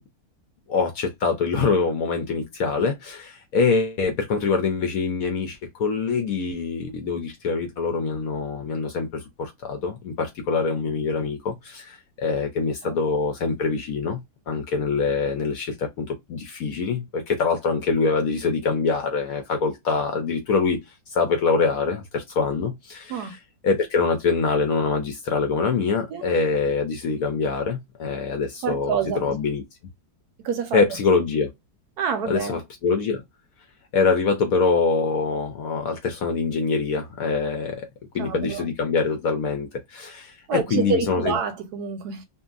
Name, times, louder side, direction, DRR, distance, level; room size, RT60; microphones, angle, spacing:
voice 1, 0.7-14.2 14.5-20.8 21.1-29.6 30.7-31.5 32.2-33.2 33.9-37.9 38.1-41.4, left 4 dB, 70° left, 0.9 m, -24 dB
voice 2, 28.6-29.4 30.4-30.8 32.0-32.6 38.2-38.7 40.5-42.2, right 6 dB, 70° right, 1.1 m, -27 dB
2.7 x 2.6 x 2.3 m
omnidirectional pair, 1.9 m